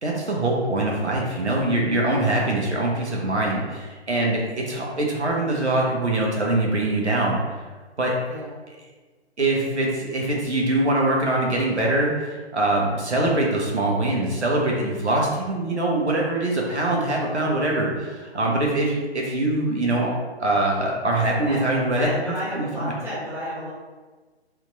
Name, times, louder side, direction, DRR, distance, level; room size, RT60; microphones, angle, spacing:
voice 1, 0.0-7.4 8.0-8.1 9.4-20.1 20.4-22.1 22.5-22.9, right 2 dB, 80° right, -2 dB, 1.2 m, -23 dB
voice 2, 21.4-23.7, equal, 5° right, -12 dB, 1.3 m, -32 dB
3.5 x 3.0 x 3.9 m, 1.3 s
figure-of-eight pair, 140°, 33 cm